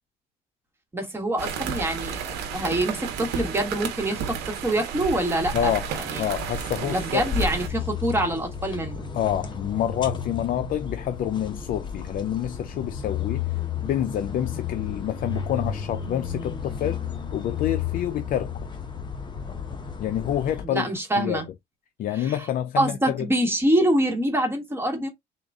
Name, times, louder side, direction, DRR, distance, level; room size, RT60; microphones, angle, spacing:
voice 1, 0.9-6.3 6.9-9.0 20.6-21.5 22.1-22.4 22.8-25.1, right 1 dB, 15° right, 1.3 m, -25 dB
sound 1, 1.4-7.7, right 6 dB, 85° right, 0.9 m, -32 dB
voice 2, 5.5-5.9 6.2-7.3 9.1-17.0 17.3-18.5 20.0-20.9 21.2-21.4 22.0-23.3, left 10 dB, 55° left, 0.4 m, -28 dB
sound 2, 7.3-20.7, left 7 dB, 25° left, 0.8 m, -32 dB
3.8 x 2.4 x 3.5 m
cardioid pair, 110°, 17 cm